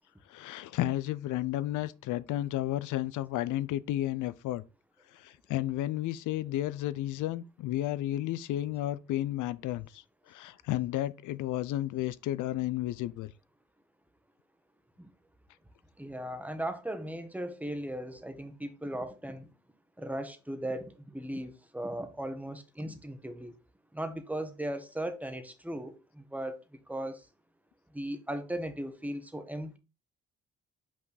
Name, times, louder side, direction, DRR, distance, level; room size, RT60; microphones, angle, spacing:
voice 1, 0.3-4.6 5.1-13.3, left 14 dB, 85° left, 0.6 m, -32 dB
voice 2, 16.0-19.5 20.0-23.5 23.9-26.6 26.9-27.3 27.9-29.8, right 1 dB, 5° right, 1.2 m, -37 dB
5.8 x 5.0 x 4.0 m
cardioid pair, 90°, 30 cm